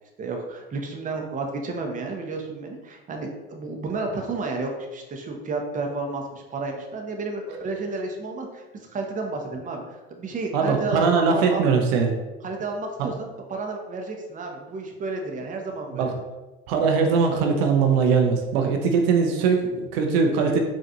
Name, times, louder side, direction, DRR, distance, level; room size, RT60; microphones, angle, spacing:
voice 1, 0.2-8.6 8.9-11.6 12.4-16.1, right 3 dB, 25° right, 2 dB, 0.7 m, -31 dB
voice 2, 10.5-12.2 15.9-16.1 16.7-20.6, right 5 dB, 75° right, 3 dB, 0.6 m, -21 dB
3.8 x 2.4 x 2.8 m, 1.1 s
hypercardioid pair, 80°, 30 cm